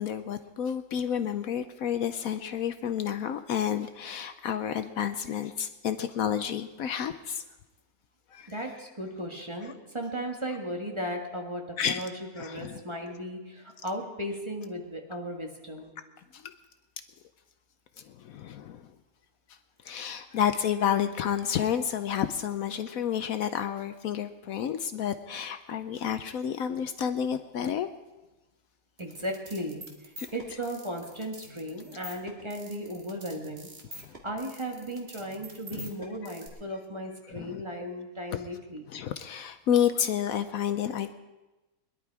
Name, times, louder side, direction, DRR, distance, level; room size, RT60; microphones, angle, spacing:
voice 1, 0.0-7.4 8.3-8.6 9.6-9.7 11.8-12.0 12.4-12.8 16.3-16.4 18.0-18.8 19.8-27.9 30.2-30.3 35.7-35.9 36.2-36.3 37.3-37.6 38.3-38.4 38.9-41.1, left 9 dB, 70° left, 10 dB, 1.0 m, -30 dB
voice 2, 8.5-15.9 29.0-29.8 30.3-33.7 34.2-38.8, equal, 20° right, 1 dB, 1.6 m, -36 dB
sound 1, 29.0-36.5, right 1 dB, 40° right, 2.1 m, -46 dB
21.5 x 11.0 x 4.7 m, 1.1 s
omnidirectional pair, 1.6 m